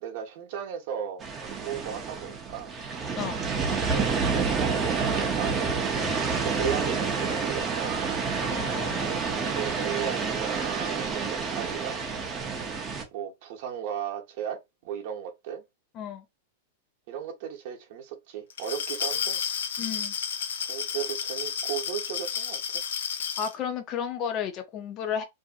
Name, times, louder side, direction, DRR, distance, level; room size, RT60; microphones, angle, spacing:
voice 1, 0.0-2.7 3.7-8.2 9.3-12.0 13.1-15.6 17.1-19.4 20.7-22.8, right 9 dB, 55° right, 0.8 m, -36 dB
sound 1, 1.2-13.0, right 5 dB, 20° right, 0.6 m, -29 dB
voice 2, 8.4-9.3 15.9-16.3 19.8-20.1 23.4-25.2, left 8 dB, 30° left, 0.6 m, -33 dB
Glass, 18.5-23.5, left 7 dB, 90° left, 0.5 m, -31 dB
2.6 x 2.5 x 2.4 m
supercardioid pair, 150°, 0 cm